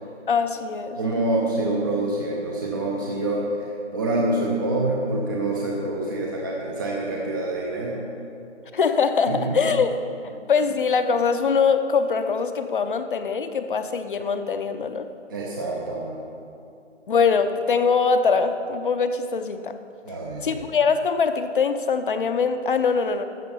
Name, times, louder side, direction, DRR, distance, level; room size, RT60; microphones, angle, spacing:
voice 1, 0.3-1.0 8.7-10.0 10.2-15.1 17.1-19.8 20.4-23.2, left 5 dB, 45° left, 9 dB, 0.7 m, -22 dB
voice 2, 1.0-8.0 9.3-9.6 15.3-16.2 20.0-20.6, right 2 dB, 20° right, -3 dB, 0.6 m, -26 dB
13.0 x 7.5 x 5.4 m, 2.6 s
figure-of-eight pair, 150°, 36 cm